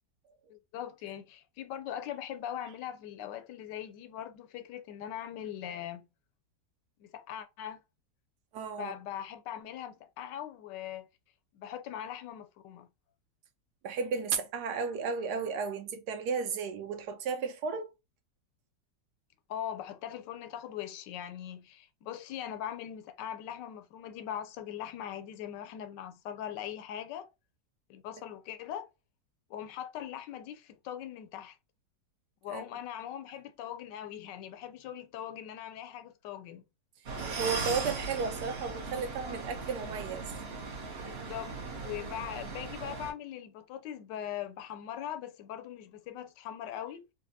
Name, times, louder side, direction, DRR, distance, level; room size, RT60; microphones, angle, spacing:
voice 1, 0.5-6.1 7.0-7.8 8.8-11.1 11.5-12.9 19.5-27.3 27.9-28.9 29.5-31.6 32.4-36.6 41.0-47.0, left 10 dB, 90° left, 1.2 m, -41 dB
voice 2, 8.5-8.9 13.8-17.9 32.5-32.6 37.2-40.3, right 5 dB, 75° right, 1.2 m, -34 dB
sound 1, 37.1-43.1, right 4 dB, 50° right, 0.8 m, -38 dB
4.0 x 2.2 x 2.7 m
omnidirectional pair, 1.8 m